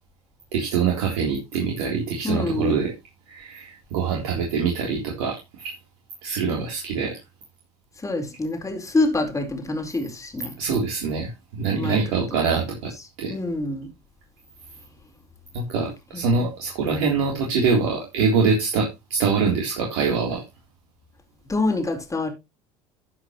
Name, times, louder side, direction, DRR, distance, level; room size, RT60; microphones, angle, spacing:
voice 1, 0.5-2.9 3.3-5.8 6.2-7.2 10.6-12.9 13.2-13.3 15.5-20.4, right 5 dB, 75° right, 3.7 m, -24 dB
voice 2, 2.2-2.8 8.0-10.6 11.7-12.0 13.3-13.9 16.1-16.5 21.5-22.3, left 2 dB, 15° left, 4.5 m, -26 dB
14.0 x 7.9 x 3.1 m
hypercardioid pair, 75°, 19 cm